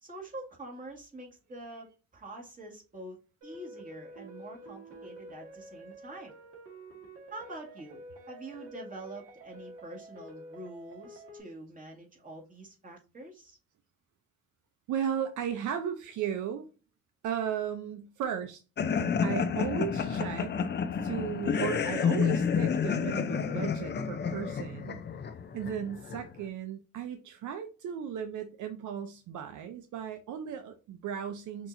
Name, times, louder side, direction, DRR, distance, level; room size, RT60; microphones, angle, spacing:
voice 1, 0.0-3.2 3.4-6.3 7.3-8.0 8.3-13.6, right 2 dB, 25° right, 2.0 m, -45 dB
sound 1, 3.4-11.4, right 1 dB, 50° right, 2.0 m, -49 dB
voice 2, 14.9-16.7 17.2-18.6 19.2-20.5 21.0-25.0 25.5-31.7, right 8 dB, 75° right, 0.7 m, -35 dB
sound 2, 18.8-26.4, left 6 dB, 35° left, 0.5 m, -30 dB
6.0 x 2.9 x 2.6 m
cardioid pair, 90°, 30 cm